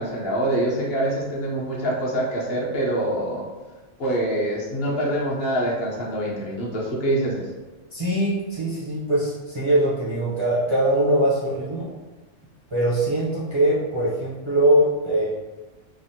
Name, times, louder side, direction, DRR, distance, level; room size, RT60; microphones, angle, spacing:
voice 1, 0.0-3.4 4.0-7.4, right 1 dB, 60° left, -5 dB, 0.9 m, -25 dB
voice 2, 7.9-11.9 12.7-15.3, right 1 dB, 40° right, -8 dB, 0.4 m, -22 dB
3.3 x 2.1 x 2.7 m, 1.2 s
omnidirectional pair, 1.3 m